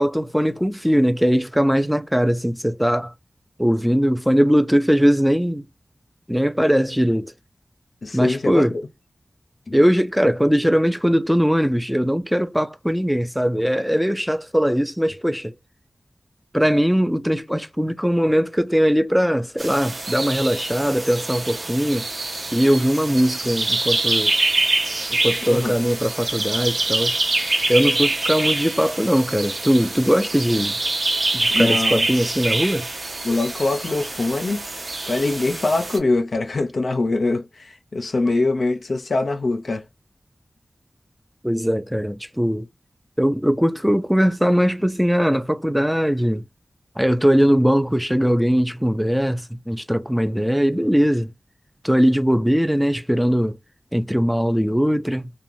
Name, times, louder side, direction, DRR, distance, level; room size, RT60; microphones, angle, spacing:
voice 1, 0.0-3.1 3.6-5.6 6.3-7.3 8.1-8.7 9.7-15.5 16.5-22.1 22.5-24.3 25.1-27.2 27.7-30.8 31.3-32.9 41.4-42.7 43.2-46.4 47.0-51.3 51.8-53.6 53.9-55.3, equal, 5° right, 0.3 m, -20 dB
voice 2, 8.0-8.8 9.7-9.8 25.4-25.7 31.5-32.1 33.2-34.6 35.1-37.5 37.9-39.8, left 2 dB, 75° left, 0.5 m, -22 dB
sound 1, 19.6-36.0, right 2 dB, 75° right, 0.8 m, -25 dB
2.5 x 2.1 x 3.0 m
cardioid pair, 45°, 0 cm